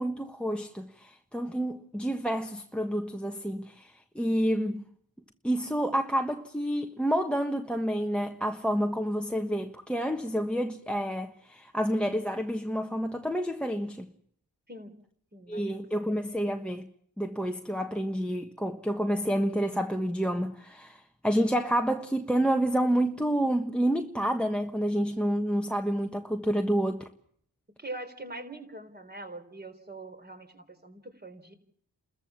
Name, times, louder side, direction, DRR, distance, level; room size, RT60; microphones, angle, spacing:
voice 1, 0.0-4.8 5.4-14.1 15.5-16.9 17.2-27.1, equal, ahead, 1.3 m, -29 dB
voice 2, 15.3-16.1 27.8-31.5, right 2 dB, 25° right, 4.0 m, -43 dB
29.5 x 14.0 x 7.2 m
cardioid pair, 45°, 42 cm